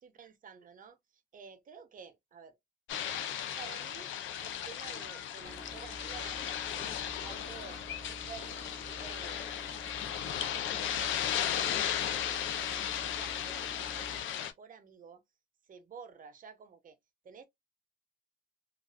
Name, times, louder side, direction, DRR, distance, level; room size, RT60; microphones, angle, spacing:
voice 1, 0.0-2.6 3.1-4.1 4.4-6.4 6.8-9.7 10.1-15.2 15.6-17.0 17.3-17.4, right 6 dB, 45° right, 0.7 m, -52 dB
sound 1, 2.9-14.5, left 10 dB, 75° left, 0.5 m, -36 dB
sound 2, 5.4-14.2, equal, 15° left, 0.9 m, -49 dB
2.4 x 2.3 x 2.2 m
cardioid pair, 90°, 20 cm